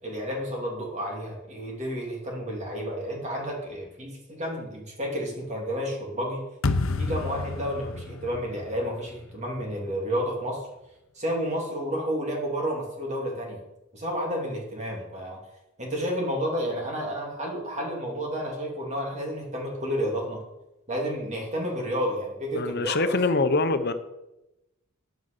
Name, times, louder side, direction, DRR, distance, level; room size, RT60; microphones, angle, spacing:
voice 1, 0.0-6.4 7.0-10.7 11.1-13.6 13.9-15.4 15.8-20.4 20.9-23.2, equal, 35° right, -1 dB, 2.8 m, -31 dB
sound 1, 6.6-9.7, left 3 dB, 75° left, 0.9 m, -30 dB
voice 2, 22.5-23.9, left 3 dB, 50° left, 11 dB, 1.0 m, -24 dB
9.4 x 9.4 x 6.8 m, 0.94 s
head